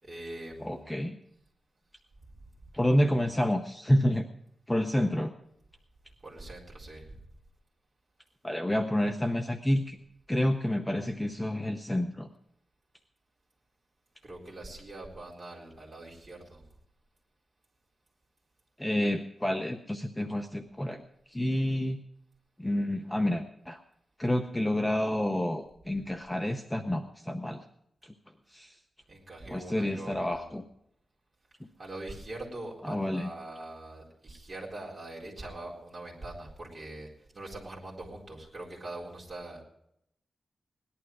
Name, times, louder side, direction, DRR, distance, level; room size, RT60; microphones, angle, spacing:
voice 1, 0.0-0.9 6.2-7.2 14.2-16.6 29.1-30.4 31.8-37.1 37.3-39.6, right 2 dB, 30° right, -3 dB, 4.1 m, -43 dB
voice 2, 0.6-1.2 2.7-4.3 4.7-5.3 8.4-10.0 10.3-12.3 18.8-21.0 21.3-22.0 22.6-23.8 24.2-27.6 28.0-28.1 28.5-28.8 29.5-30.6 32.8-33.3, left 1 dB, 5° left, 5 dB, 0.7 m, -29 dB
18.5 x 11.5 x 4.7 m, 0.74 s
wide cardioid pair, 165°, 0 cm